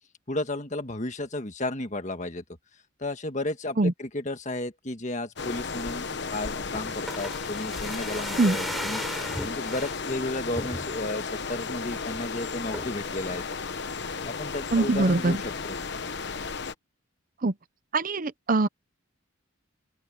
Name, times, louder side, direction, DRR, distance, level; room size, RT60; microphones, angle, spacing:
voice 1, 0.3-2.4 3.0-13.4 14.2-15.8, left 2 dB, 35° left, 1.6 m, -33 dB
sound 1, 5.4-16.7, left 4 dB, 55° left, 1.1 m, -34 dB
Wheelbarrow Tipped, 6.7-10.0 10.5-11.2 11.6-11.7 11.9-12.2 12.7-13.1 13.5-14.2 14.5-14.6, equal, ahead, 3.4 m, -37 dB
voice 2, 14.7-15.4 17.4-17.5 17.9-18.7, right 2 dB, 40° right, 0.7 m, -22 dB
open air
head